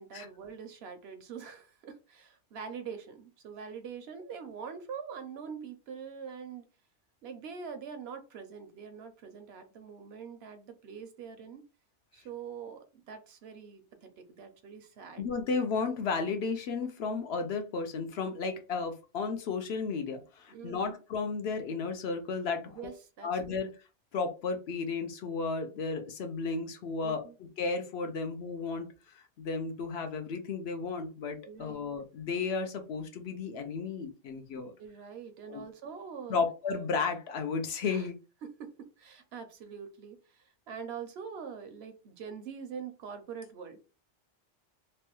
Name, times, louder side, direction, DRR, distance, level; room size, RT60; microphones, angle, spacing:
voice 1, 0.0-6.6 7.2-11.6 12.1-15.3 20.5-20.9 22.7-23.6 27.0-27.4 31.5-31.8 34.8-36.4 37.9-38.1 38.4-43.8, right 6 dB, 65° right, 8 dB, 0.7 m, -44 dB
voice 2, 15.2-22.8 23.2-23.7 24.1-27.2 27.6-28.9 29.2-34.7 35.5-35.6 36.3-38.1, left 4 dB, 65° left, 6 dB, 0.8 m, -33 dB
3.1 x 2.2 x 2.9 m, 0.31 s
omnidirectional pair, 1.2 m